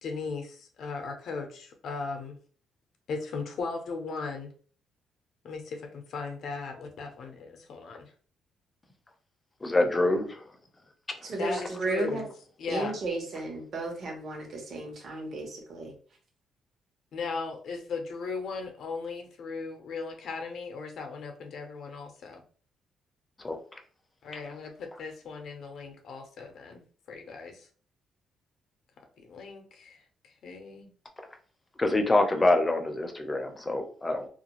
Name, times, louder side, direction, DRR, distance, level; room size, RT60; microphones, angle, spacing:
voice 1, 0.0-2.4 3.1-4.5 5.4-8.1 11.4-12.3 12.6-13.0 17.1-22.4 24.2-27.7 29.2-30.0 30.2-30.9, left 4 dB, 70° left, 4 dB, 0.6 m, -37 dB
voice 2, 9.6-10.4 23.4-23.8 31.8-34.3, left 2 dB, 20° left, 5 dB, 0.5 m, -26 dB
voice 3, 11.3-12.3 12.7-15.9, right 2 dB, 55° right, 0 dB, 1.0 m, -33 dB
2.5 x 2.2 x 2.9 m, 0.43 s
cardioid pair, 90°, 0 cm